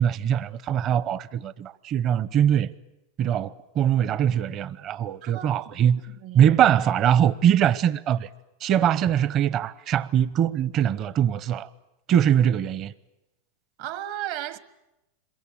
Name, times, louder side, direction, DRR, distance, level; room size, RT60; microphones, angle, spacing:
voice 1, 0.0-2.7 3.2-6.0 6.3-8.3 8.6-11.7 12.1-12.9, right 9 dB, 40° right, 0.9 m, -22 dB
voice 2, 5.8-6.6 13.8-14.6, right 13 dB, 60° right, 1.5 m, -35 dB
26.5 x 22.5 x 8.6 m
hypercardioid pair, 115°, 0 cm